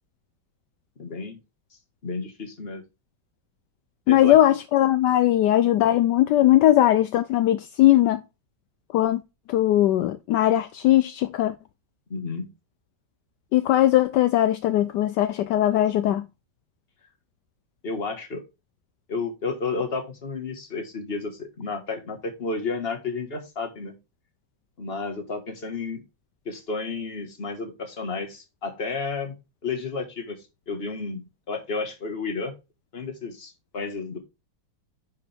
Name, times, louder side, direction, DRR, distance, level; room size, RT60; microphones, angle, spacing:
voice 1, 1.0-1.4 2.0-2.8 4.1-4.4 12.1-12.5 17.8-18.4 19.1-23.9 24.8-26.0 26.4-29.3 29.6-30.4 30.7-31.2 31.5-32.5 32.9-34.2, left 4 dB, 35° left, 1.8 m, -31 dB
voice 2, 4.1-8.2 8.9-9.2 9.5-11.5 13.5-16.2, left 13 dB, 75° left, 1.2 m, -19 dB
10.5 x 5.1 x 3.5 m
omnidirectional pair, 1.9 m